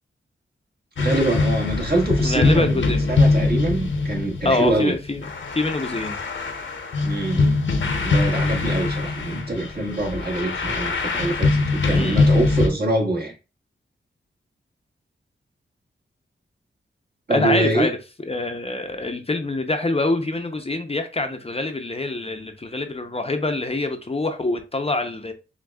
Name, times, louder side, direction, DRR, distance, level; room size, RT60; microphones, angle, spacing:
sound 1, 1.0-12.7, left 3 dB, 65° left, 0.8 m, -22 dB
voice 1, 1.0-4.9 7.0-7.6 7.9-13.3 17.3-17.9, right 2 dB, 50° right, 1.6 m, -24 dB
voice 2, 2.2-3.1 4.4-5.2 5.5-6.2 11.9-12.3 17.3-18.0 18.3-25.3, left 2 dB, 30° left, 0.7 m, -25 dB
6.0 x 2.3 x 2.3 m
cardioid pair, 50°, 21 cm